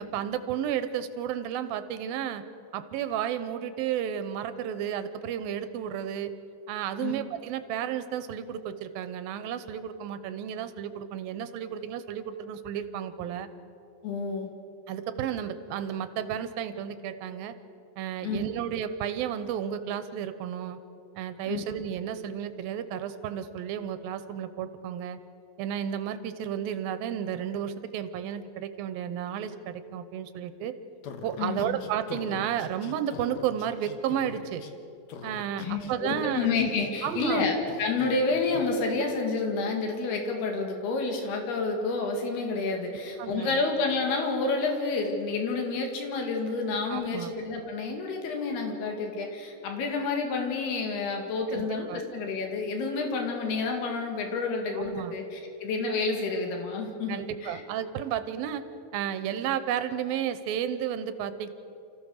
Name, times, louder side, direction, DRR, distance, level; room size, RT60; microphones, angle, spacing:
voice 1, 0.0-2.4 2.7-6.3 6.7-13.5 14.9-17.6 18.0-20.8 21.2-25.2 25.6-30.7 31.2-34.6 35.2-36.5 37.0-37.5 43.2-43.6 46.9-47.3 51.5-52.0 54.8-55.2 57.1-58.6 58.9-61.5, right 9 dB, 75° right, 11 dB, 2.5 m, -32 dB
voice 2, 14.0-14.5 18.2-18.5 21.5-21.7 31.4-31.8 35.6-57.6, left 3 dB, 80° left, 2 dB, 4.2 m, -29 dB
sound 1, 31.0-34.7 35.1-37.4 37.7-38.2 38.5-38.7, left 6 dB, 65° left, 1.9 m, -42 dB
28.5 x 14.5 x 6.5 m, 2.7 s
omnidirectional pair, 4.5 m